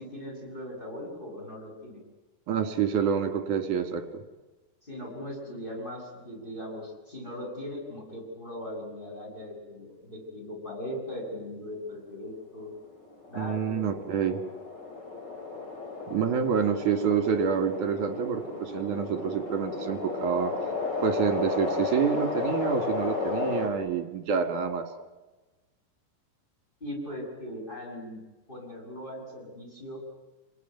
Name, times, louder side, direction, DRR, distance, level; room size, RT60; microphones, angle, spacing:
voice 1, 0.0-2.0 4.8-12.7 13.3-13.9 26.8-28.2 28.5-30.0, left 1 dB, 10° left, 1 dB, 8.1 m, -39 dB
voice 2, 2.5-4.2 13.4-14.4 16.1-20.5 21.0-24.9, right 7 dB, 55° right, 7 dB, 3.5 m, -27 dB
sound 1, 12.9-23.7, left 4 dB, 25° left, 3.5 m, -34 dB
29.0 x 19.0 x 9.5 m, 1.2 s
omnidirectional pair, 4.7 m